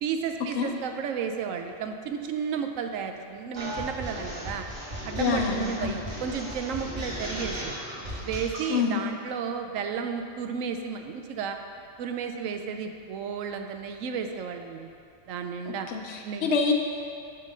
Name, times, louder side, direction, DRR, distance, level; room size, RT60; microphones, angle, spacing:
voice 1, 0.0-4.6 5.0-7.8 8.2-11.6 12.0-14.9 15.3-15.9 16.2-16.6, right 6 dB, 75° right, 5 dB, 1.0 m, -33 dB
sound 1, 3.5-8.7, equal, 40° right, 1.6 m, -36 dB
voice 2, 5.2-6.0 8.7-9.1 15.9-16.7, left 5 dB, 60° left, 2 dB, 0.9 m, -26 dB
7.3 x 4.5 x 5.3 m, 2.4 s
omnidirectional pair, 1.4 m